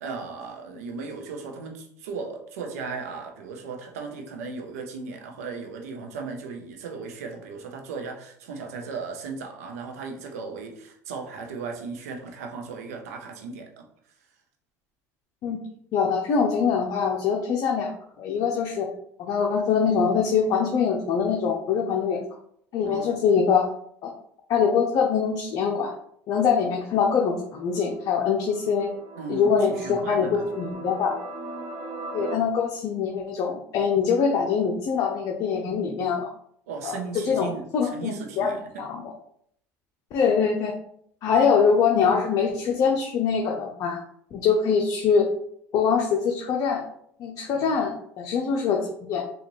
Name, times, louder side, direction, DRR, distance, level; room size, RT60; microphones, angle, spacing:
voice 1, 0.0-13.8 22.8-23.1 29.2-30.6 36.7-38.6 47.5-47.8, right 4 dB, 90° right, 3 dB, 0.7 m, -36 dB
voice 2, 15.9-17.9 18.2-18.9 19.2-22.2 22.7-23.7 24.0-24.1 24.5-25.9 26.3-28.9 29.3-31.1 32.1-36.3 36.8-39.1 40.1-40.7 41.2-44.0 44.3-45.3 45.7-46.8 47.2-49.2, left 6 dB, 55° left, 0 dB, 0.6 m, -23 dB
sound 1, 26.8-32.3, right 2 dB, 55° right, 0.8 m, -39 dB
4.0 x 2.4 x 3.1 m, 0.67 s
supercardioid pair, 85°, 8 cm